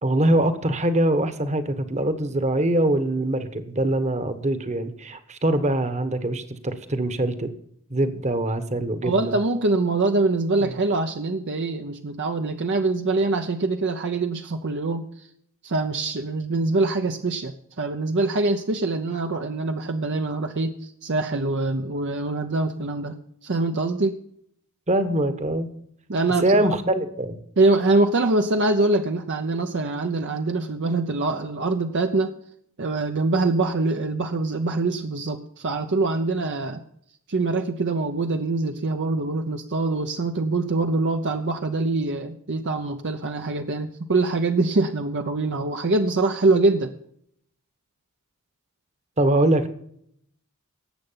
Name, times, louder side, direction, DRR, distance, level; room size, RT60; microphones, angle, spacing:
voice 1, 0.0-7.5 7.9-9.4 24.9-25.7 26.4-27.4 49.2-49.7, right 1 dB, 30° right, 11 dB, 1.2 m, -23 dB
voice 2, 9.0-15.0 15.6-24.2 26.1-26.5 27.6-32.3 32.8-36.8 37.3-46.9, right 2 dB, 55° right, 6 dB, 0.8 m, -24 dB
18.5 x 7.9 x 5.7 m, 0.69 s
head